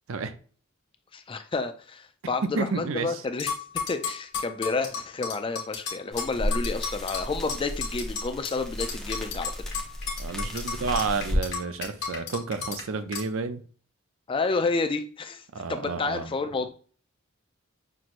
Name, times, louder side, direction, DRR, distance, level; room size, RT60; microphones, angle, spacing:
voice 1, 1.1-3.5 3.9-9.6 14.3-16.7, left 3 dB, 25° left, 0.4 m, -30 dB
voice 2, 2.6-3.2 10.2-13.6 15.5-16.3, right 4 dB, 80° right, 0.5 m, -31 dB
sound 1, 3.4-8.6 8.8-12.8 13.1-13.2, left 6 dB, 55° left, 1.4 m, -33 dB
sound 2, 6.1-11.5, equal, 5° left, 0.9 m, -33 dB
6.0 x 3.0 x 2.5 m
head